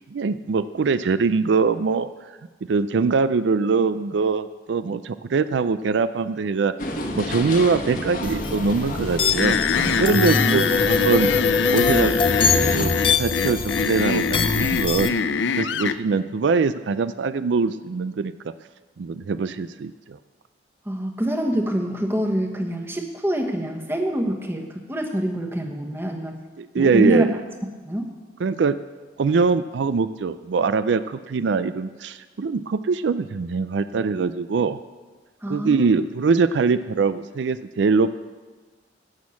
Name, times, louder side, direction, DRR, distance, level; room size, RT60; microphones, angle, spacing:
voice 1, 0.1-2.1 2.7-6.7 7.2-9.6 10.0-11.3 11.7-12.1 12.8-15.2 15.6-18.5 19.0-20.2 26.6-27.3 28.4-28.8 29.2-34.8 35.5-38.1, right 4 dB, 80° right, 13 dB, 0.4 m, -22 dB
sound 1, 6.8-12.9, left 1 dB, 45° left, 1.3 m, -30 dB
sound 2, 8.2-15.1, left 5 dB, 30° left, 0.5 m, -23 dB
sound 3, 9.4-16.0, left 6 dB, 80° left, 0.5 m, -24 dB
voice 2, 10.3-10.6 20.8-26.4 26.7-27.3 27.8-28.1 35.4-36.0, equal, 10° right, 2 dB, 1.2 m, -25 dB
16.0 x 6.3 x 7.1 m, 1.3 s
head